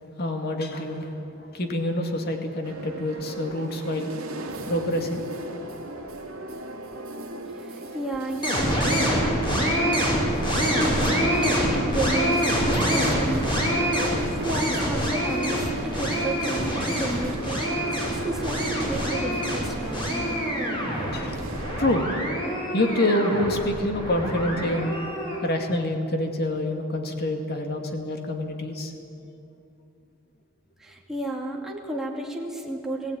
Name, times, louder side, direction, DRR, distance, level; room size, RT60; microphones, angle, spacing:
voice 1, 0.2-4.3 4.6-5.2 5.5-6.0 9.9-10.2 21.1-21.5 21.8-22.2 22.7-25.0 25.4-28.9, left 1 dB, 50° left, 4 dB, 2.2 m, -27 dB
sound 1, 2.6-21.8, right 1 dB, 75° right, 2.4 m, -38 dB
voice 2, 7.6-9.7 10.7-13.5 13.9-20.2 30.8-33.2, right 1 dB, ahead, -2 dB, 2.5 m, -32 dB
sound 2, 8.4-25.4, equal, 25° left, 5.5 m, -25 dB
20.5 x 15.5 x 9.3 m, 2.8 s
head